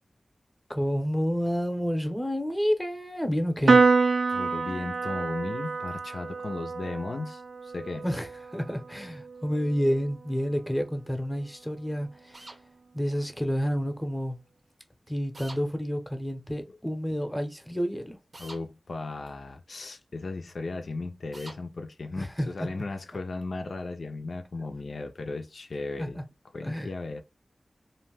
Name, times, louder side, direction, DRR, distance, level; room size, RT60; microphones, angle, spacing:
voice 1, 0.7-3.8 8.0-12.5 12.9-14.4 15.1-18.2 22.2-22.8 26.0-26.2 26.6-26.9, equal, 5° left, 0.7 m, -29 dB
Piano, 3.7-10.3, right 4 dB, 85° right, 0.3 m, -27 dB
voice 2, 4.3-8.0 18.4-26.2 26.5-27.2, left 3 dB, 75° left, 0.4 m, -36 dB
sound 1, 12.3-12.6 15.3-15.6 18.3-18.6 21.3-21.6, right 2 dB, 55° right, 0.7 m, -45 dB
2.5 x 2.1 x 3.3 m
wide cardioid pair, 70°, 0 cm